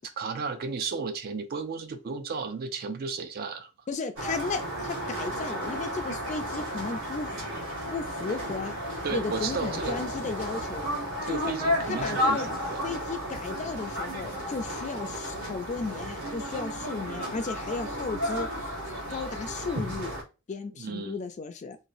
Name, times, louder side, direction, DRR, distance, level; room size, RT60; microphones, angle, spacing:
voice 1, 0.0-3.7 9.0-10.0 11.2-12.8 20.8-21.2, right 4 dB, 45° right, 0.4 m, -34 dB
voice 2, 3.9-7.3 7.9-8.8 9.1-10.9 11.3-11.5 11.9-12.5 12.8-18.5 19.1-20.2 20.5-21.8, left 4 dB, 35° left, 0.3 m, -34 dB
sound 1, 4.2-20.2, equal, 65° right, 1.3 m, -33 dB
3.0 x 2.3 x 2.6 m
head